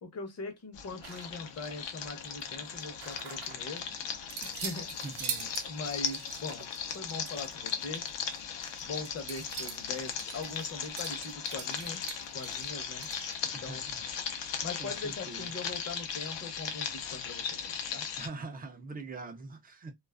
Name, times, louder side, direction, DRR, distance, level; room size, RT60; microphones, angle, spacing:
voice 1, 0.0-3.9 4.4-5.0 5.3-6.7 6.9-8.1 8.8-12.0 12.3-13.1 13.4-13.8 14.6-18.0, left 3 dB, 35° left, 0.7 m, -41 dB
sound 1, 0.7-18.3, left 7 dB, 85° left, 0.7 m, -38 dB
sound 2, 1.0-1.9 2.2-3.8 4.3-13.4, right 8 dB, 70° right, 0.6 m, -44 dB
voice 2, 5.0-5.4 13.5-14.0 14.8-15.5 18.2-19.9, right 3 dB, 25° right, 0.3 m, -43 dB
2.4 x 2.3 x 2.2 m
cardioid pair, 165°, 42 cm